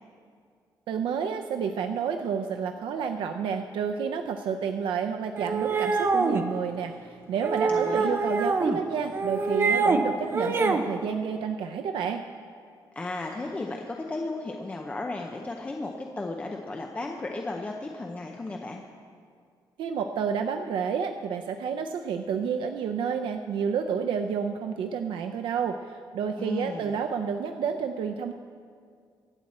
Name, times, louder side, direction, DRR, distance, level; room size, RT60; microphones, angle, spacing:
voice 1, 0.9-12.2 19.8-28.3, right 7 dB, 85° right, 5 dB, 0.6 m, -30 dB
sound 1, 5.4-6.4 7.4-8.8 9.1-10.0 10.3-10.9, right 4 dB, 30° right, 0.6 m, -25 dB
voice 2, 7.7-8.2 13.0-18.8 26.4-27.0, left 2 dB, 15° left, 2 dB, 0.6 m, -34 dB
24.0 x 8.8 x 4.2 m, 2.2 s
wide cardioid pair, 180°, 8 cm